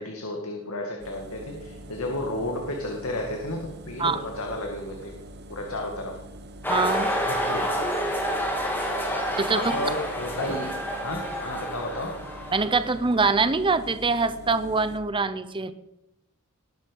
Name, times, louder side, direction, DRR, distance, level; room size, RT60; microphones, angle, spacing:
voice 1, 0.0-5.1 5.5-6.2 7.2-7.9 9.5-10.7 11.0-12.1, left 1 dB, 85° left, 1 dB, 2.3 m, -32 dB
Engine, 1.0-15.0, right 1 dB, 50° right, 1.6 m, -44 dB
sound 1, 6.6-13.0, equal, 10° left, 3.2 m, -29 dB
voice 2, 6.7-7.1 9.4-9.7 12.5-15.7, right 4 dB, 25° right, 12 dB, 0.7 m, -24 dB
20.0 x 11.0 x 5.4 m, 0.91 s
head